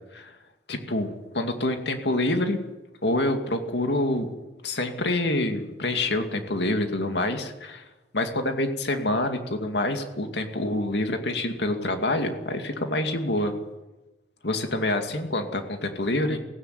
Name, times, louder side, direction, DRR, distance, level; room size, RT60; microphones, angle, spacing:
voice 1, 0.7-2.6 3.0-4.3 4.6-7.8 8.1-13.5 14.4-16.4, left 1 dB, 70° left, 5 dB, 2.5 m, -26 dB
17.0 x 16.5 x 9.4 m, 1.1 s
head